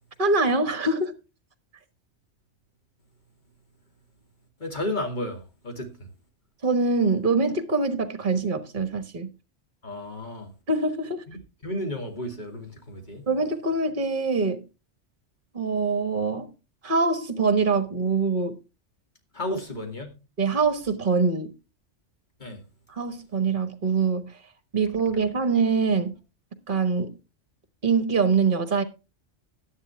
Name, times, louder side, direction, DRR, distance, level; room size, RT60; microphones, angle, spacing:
voice 1, 0.2-1.2 6.6-9.3 10.7-11.3 13.3-14.6 15.5-16.5 16.8-18.6 20.4-21.5 22.9-24.4 24.7-26.2 26.7-27.1 27.8-28.8, right 4 dB, 45° right, 1.6 m, -24 dB
voice 2, 4.6-5.9 9.8-10.5 11.3-13.3 19.3-20.2 22.4-22.7, left 1 dB, 40° left, 2.6 m, -33 dB
12.5 x 10.0 x 3.4 m
omnidirectional pair, 1.2 m